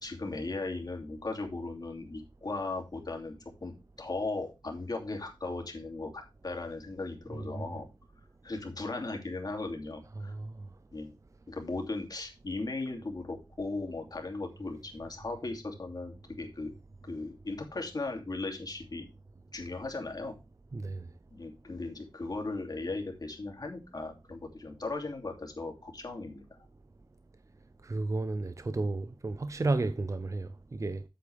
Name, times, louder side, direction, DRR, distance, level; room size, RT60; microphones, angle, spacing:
voice 1, 0.0-3.3 3.6-3.7 4.0-7.9 8.4-10.3 10.9-11.1 11.5-16.7 17.0-19.1 19.5-20.3 21.3-26.4, left 3 dB, 50° left, 2.7 m, -37 dB
voice 2, 10.2-10.5 20.7-21.1 27.8-31.0, right 2 dB, 35° right, 0.6 m, -32 dB
8.4 x 8.4 x 3.5 m
wide cardioid pair, 100°, 9 cm